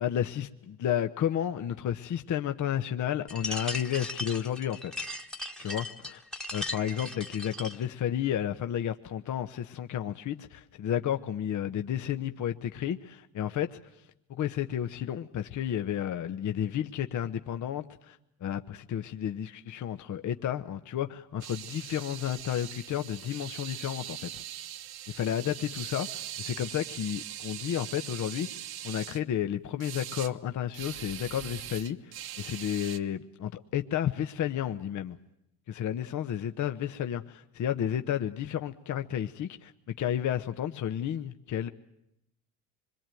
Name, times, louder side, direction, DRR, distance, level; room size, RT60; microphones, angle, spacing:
voice 1, 0.0-5.1 5.6-6.2 6.5-13.8 14.3-24.4 25.1-35.2 35.7-41.7, left 10 dB, 45° left, 8 dB, 1.1 m, -32 dB
sound 1, 3.3-7.9, left 1 dB, ahead, 1.4 m, -38 dB
sound 2, 21.4-29.2 29.8-30.3 30.7-33.0, right 12 dB, 60° right, 1.2 m, -41 dB
25.5 x 22.5 x 9.2 m, 0.83 s
hypercardioid pair, 75°, 42 cm